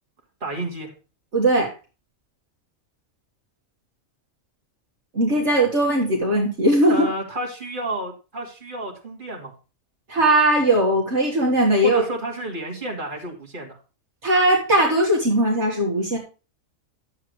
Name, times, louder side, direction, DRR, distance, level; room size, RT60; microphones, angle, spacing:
voice 1, 0.4-0.9 6.9-9.5 11.8-13.8, right 1 dB, 40° right, 0 dB, 2.7 m, -31 dB
voice 2, 1.3-1.7 5.1-7.1 10.1-12.0 14.2-16.2, right 1 dB, 55° right, -2 dB, 2.1 m, -19 dB
11.5 x 7.6 x 3.1 m, 0.32 s
omnidirectional pair, 1.4 m